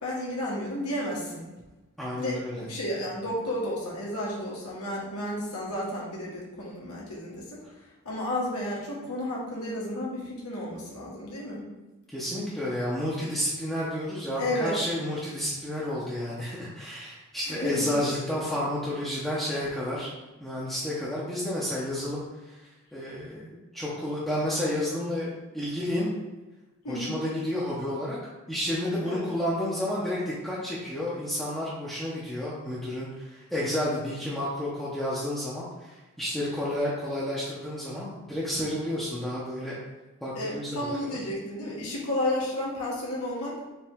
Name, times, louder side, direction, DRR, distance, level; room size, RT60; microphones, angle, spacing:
voice 1, 0.0-1.4 2.2-7.6 8.0-11.7 14.4-14.7 17.4-18.1 26.8-27.2 29.0-29.3 40.3-43.6, left 1 dB, 80° left, -4 dB, 1.4 m, -32 dB
voice 2, 2.0-2.6 12.1-20.1 20.4-25.3 25.5-26.1 26.9-28.2 28.5-39.8 40.2-41.2, left 1 dB, ahead, -8 dB, 0.7 m, -31 dB
4.4 x 3.1 x 3.6 m, 1.1 s
head